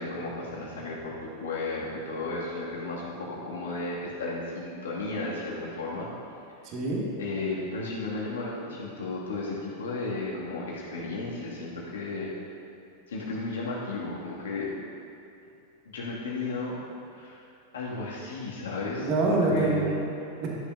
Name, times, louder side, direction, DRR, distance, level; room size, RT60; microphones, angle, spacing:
voice 1, 0.0-6.1 7.2-12.3 13.1-14.7 15.9-16.8 17.1-17.4 17.7-19.9, left 3 dB, 65° left, -5 dB, 2.4 m, -34 dB
voice 2, 6.6-7.0 19.0-20.5, right 3 dB, 40° right, -3 dB, 2.3 m, -26 dB
14.0 x 10.5 x 2.8 m, 2.6 s
figure-of-eight pair, 90°, 0 cm